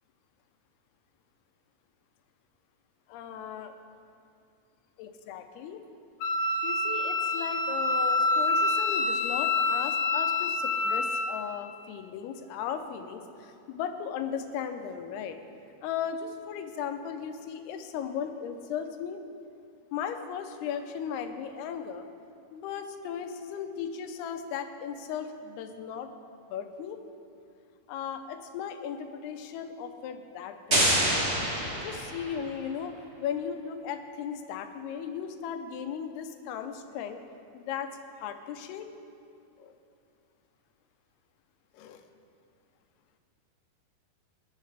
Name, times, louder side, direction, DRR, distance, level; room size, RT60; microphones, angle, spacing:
voice 1, 3.1-3.7 5.0-5.8 6.6-15.4 15.8-19.2 19.9-22.1 22.5-26.1 26.5-27.0 27.9-31.0 31.8-37.2 37.5-37.9 38.2-38.9 39.6-39.7 41.7-42.0, left 8 dB, 85° left, 7 dB, 2.8 m, -36 dB
Wind instrument woodwind instrument, 6.2-11.3, left 3 dB, 60° left, 1.9 m, -27 dB
sound 1, 30.7-32.5, right 1 dB, 40° right, 0.9 m, -26 dB
20.5 x 10.5 x 3.3 m, 2.5 s
omnidirectional pair, 4.5 m